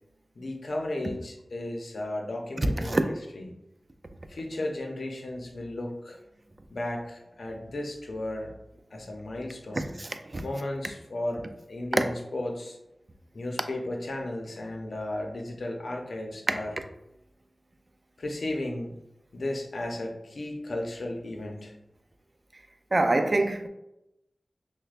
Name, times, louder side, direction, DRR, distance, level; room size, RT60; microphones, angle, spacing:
voice 1, 0.4-3.0 3.3-3.5 4.3-6.2 6.7-8.5 8.9-9.9 10.4-12.8 13.3-16.8 18.2-18.9 19.3-21.7, left 1 dB, 80° left, 0.7 m, -34 dB
voice 2, 2.6-3.0 9.8-10.4 11.9-12.0 22.9-23.7, right 2 dB, 45° right, 0.4 m, -25 dB
6.1 x 2.2 x 2.5 m
wide cardioid pair, 55°, 0 cm